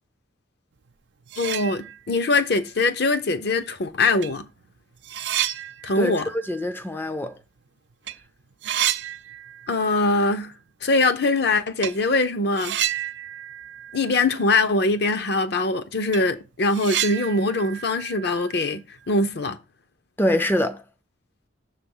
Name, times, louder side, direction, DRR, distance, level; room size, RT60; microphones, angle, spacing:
sound 1, 0.9-1.0 1.2-2.3 2.7-2.8 3.7-3.8 4.2-7.7 7.9-8.2 8.4-10.0 10.2-10.3 11.8-12.0 12.6-14.7 15.0-15.1 15.5-15.6 15.9-19.1, right 12 dB, 60° right, 0.4 m, -31 dB
voice 1, 1.4-4.5 5.8-6.3 9.7-10.5 10.8-12.8 13.9-19.6, left 2 dB, 55° left, 0.6 m, -22 dB
voice 2, 6.0-7.4 20.2-20.8, left 1 dB, 10° left, 0.4 m, -24 dB
6.8 x 3.4 x 5.5 m
head